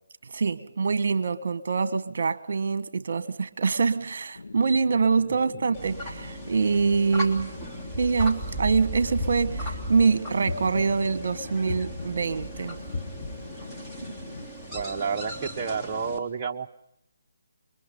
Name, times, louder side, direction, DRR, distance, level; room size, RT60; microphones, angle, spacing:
voice 1, 0.3-7.5 8.0-12.8, right 5 dB, 60° right, 1.4 m, -25 dB
sound 1, 4.3-14.5, left 3 dB, 75° left, 3.0 m, -43 dB
sound 2, 5.7-16.2, right 1 dB, 5° left, 3.2 m, -37 dB
sound 3, 9.2-9.8 10.5-11.1 11.7-12.3 12.9-13.6, left 3 dB, 45° left, 3.9 m, -35 dB
voice 2, 14.7-16.8, right 5 dB, 30° right, 1.2 m, -30 dB
29.0 x 23.5 x 5.4 m
figure-of-eight pair, 155°, 0 cm